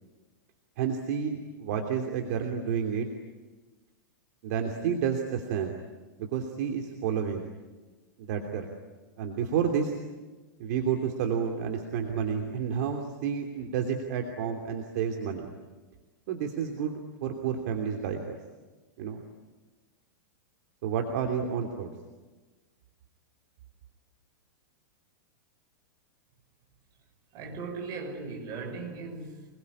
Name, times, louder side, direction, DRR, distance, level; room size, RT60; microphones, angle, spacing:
voice 1, 0.8-3.1 4.4-5.8 6.2-7.5 8.2-8.7 9.2-9.9 10.6-15.5 16.3-18.4 19.0-19.2 20.8-21.9, right 7 dB, 50° right, 3 dB, 3.0 m, -30 dB
voice 2, 27.3-29.5, right 4 dB, 30° right, 3 dB, 5.8 m, -38 dB
27.5 x 21.5 x 9.9 m, 1.2 s
supercardioid pair, 160°, 11 cm